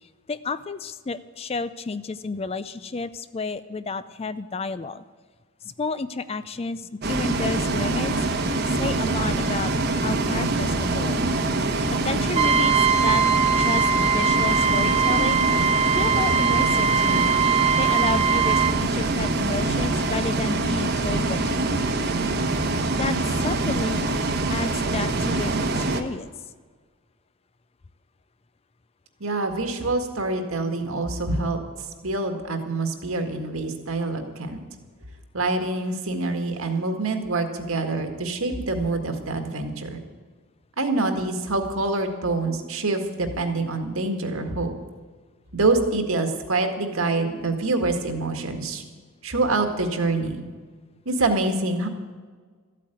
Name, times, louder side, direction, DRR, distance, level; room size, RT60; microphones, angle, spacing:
voice 1, 0.0-5.0 5.6-8.1 8.7-11.1 11.9-13.2 13.6-15.7 15.9-17.3 17.8-21.9 23.0-24.1 24.5-26.3, left 4 dB, 25° left, 14 dB, 0.4 m, -31 dB
Bus, 7.0-26.0, right 2 dB, 45° right, 1.1 m, -24 dB
Trumpet, 12.3-18.8, right 6 dB, 30° right, 0.9 m, -21 dB
voice 2, 29.2-31.6 32.0-34.6 35.3-40.0 40.8-44.7 45.5-48.8 49.2-50.4 51.1-51.9, right 2 dB, 70° right, 5 dB, 1.9 m, -25 dB
14.0 x 8.5 x 9.2 m, 1.5 s
head